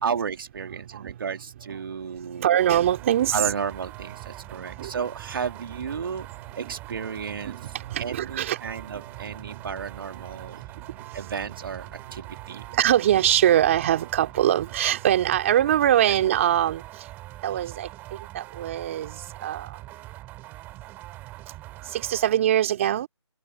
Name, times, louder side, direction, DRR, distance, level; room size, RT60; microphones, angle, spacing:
voice 1, 0.0-2.5 3.3-6.3 6.6-10.6 11.1-12.6 16.1-16.2 17.6-17.7, right 6 dB, 50° right, 2.1 m, -33 dB
voice 2, 2.4-3.3 4.8-4.9 6.6-6.7 7.5-8.6 12.7-16.8 17.4-17.9 18.3-19.1 19.4-19.7 21.9-23.1, right 11 dB, 25° right, 2.6 m, -22 dB
sound 1, 2.6-22.4, right 17 dB, 10° right, 3.1 m, -43 dB
hypercardioid pair, 165°, 15 cm